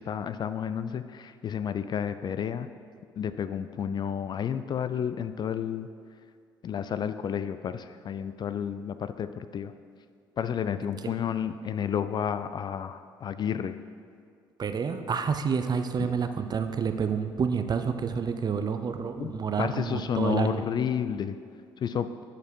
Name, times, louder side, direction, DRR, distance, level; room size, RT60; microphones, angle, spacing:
voice 1, 0.0-2.7 3.2-5.9 6.6-9.7 10.4-13.8 16.0-16.1 19.2-19.3 19.6-21.4 21.8-22.1, left 8 dB, 40° left, 12 dB, 0.3 m, -31 dB
voice 2, 14.6-20.6, right 6 dB, 35° right, 8 dB, 0.6 m, -29 dB
10.5 x 4.4 x 4.4 m, 2.2 s
hypercardioid pair, 50°, 11 cm